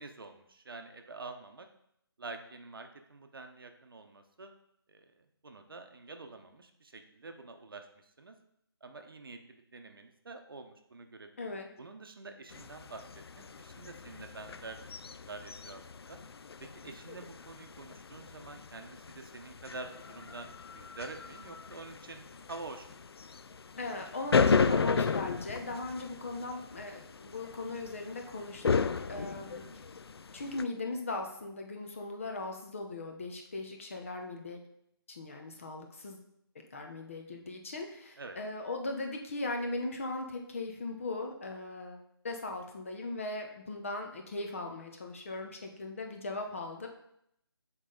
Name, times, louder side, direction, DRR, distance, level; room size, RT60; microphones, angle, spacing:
voice 1, 0.0-1.7 2.2-4.5 4.9-7.9 8.2-8.4 8.8-11.5 11.8-13.0 13.4-16.2 16.6-23.0 29.3-29.8 38.2-38.4, right 3 dB, 60° right, 6 dB, 0.8 m, -47 dB
voice 2, 11.4-11.7 23.8-29.7 30.3-34.6 35.1-36.2 36.7-46.9, left 2 dB, 30° left, 3 dB, 0.7 m, -39 dB
sound 1, 12.5-30.6, left 5 dB, 75° left, 0.4 m, -35 dB
7.2 x 4.0 x 3.8 m, 0.75 s
figure-of-eight pair, 170°, 13 cm